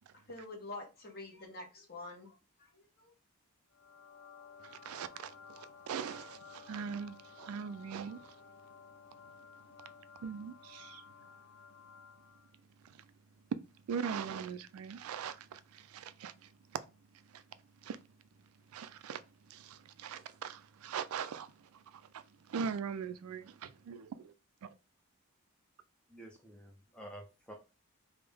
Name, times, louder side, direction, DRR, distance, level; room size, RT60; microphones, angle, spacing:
voice 1, 0.3-3.1, left 2 dB, 45° left, 1.0 m, -47 dB
sound 1, 3.7-12.5, left 6 dB, 70° left, 0.4 m, -55 dB
voice 2, 4.6-8.4 10.2-11.0 12.8-13.0 13.5-13.6 13.9-16.5 17.3-17.4 17.8-18.0 18.7-19.2 19.5-24.3 24.6-24.7, right 6 dB, 80° right, 0.3 m, -41 dB
voice 3, 26.1-27.5, right 1 dB, 5° left, 0.4 m, -50 dB
3.4 x 2.1 x 3.3 m
head